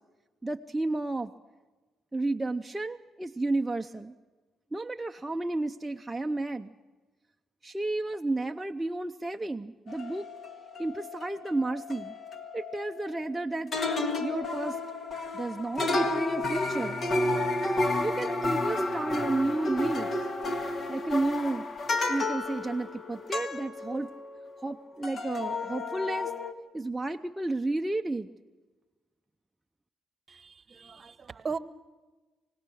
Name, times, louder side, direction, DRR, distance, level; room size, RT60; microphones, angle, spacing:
voice 1, 0.4-1.3 2.1-4.1 4.7-6.7 7.6-10.3 10.8-12.1 12.5-13.7 14.2-14.8 15.3-17.0 18.0-20.1 20.9-21.7 22.1-24.1 24.6-26.3 26.7-28.3, right 2 dB, 10° right, 4 dB, 0.7 m, -32 dB
sound 1, 9.9-13.4 13.7-24.8 25.0-26.5, left 2 dB, 45° left, 1.8 m, -32 dB
voice 2, 30.3-31.6, right 5 dB, 40° right, 14 dB, 1.1 m, -37 dB
24.5 x 19.5 x 6.3 m, 1.2 s
cardioid pair, 90°, 0 cm